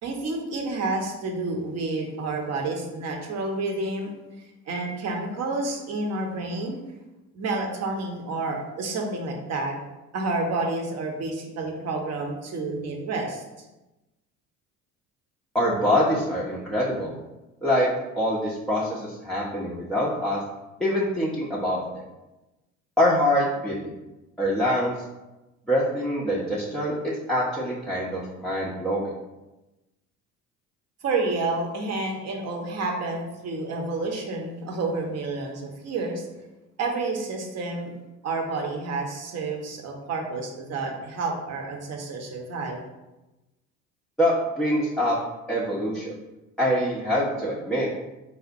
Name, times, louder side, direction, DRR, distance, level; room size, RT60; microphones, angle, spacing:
voice 1, 0.0-4.1 4.7-6.8 7.3-9.7 10.1-13.4 31.0-36.2 36.8-37.9 38.2-42.8, right 3 dB, 40° right, 1 dB, 0.8 m, -29 dB
voice 2, 15.5-17.2 17.6-17.9 18.2-20.4 20.8-22.0 23.0-23.9 24.4-24.9 25.7-29.1 44.2-45.2 45.5-46.2 46.6-47.9, equal, ahead, -6 dB, 0.5 m, -24 dB
4.1 x 2.1 x 2.6 m, 1.0 s
hypercardioid pair, 55°, 41 cm